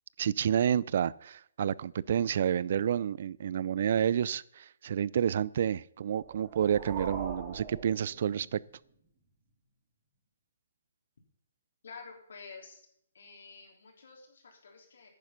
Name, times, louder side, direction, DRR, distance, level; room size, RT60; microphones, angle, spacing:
voice 1, 0.2-8.6, right 9 dB, 50° right, 0.4 m, -29 dB
sound 1, 6.2-8.7, right 5 dB, 25° right, 2.1 m, -42 dB
voice 2, 11.8-12.8 13.1-15.1, left 5 dB, 70° left, 3.3 m, -50 dB
10.0 x 9.5 x 5.8 m
hypercardioid pair, 160°, 0 cm